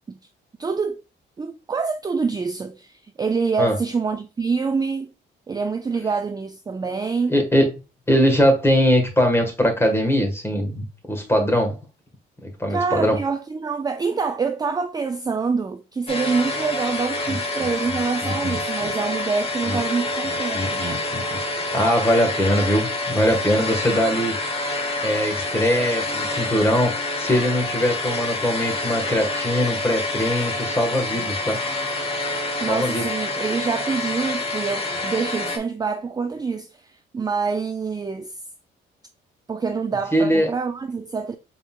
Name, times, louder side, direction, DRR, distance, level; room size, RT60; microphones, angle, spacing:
voice 1, 0.6-1.0 1.4-5.1 5.5-7.3 12.7-20.8 32.6-38.3 39.5-41.4, right 5 dB, 20° right, 0.4 m, -26 dB
voice 2, 7.3-7.7 8.1-11.8 12.4-13.2 17.3-17.4 18.3-18.9 19.7-19.8 20.2-24.3 24.7-26.9 27.2-31.6 32.7-33.1 40.1-40.5, equal, 10° left, 1.5 m, -21 dB
sound 1, 16.1-35.6, left 2 dB, 30° left, 1.2 m, -27 dB
5.0 x 3.6 x 2.4 m
cardioid pair, 90°, 20 cm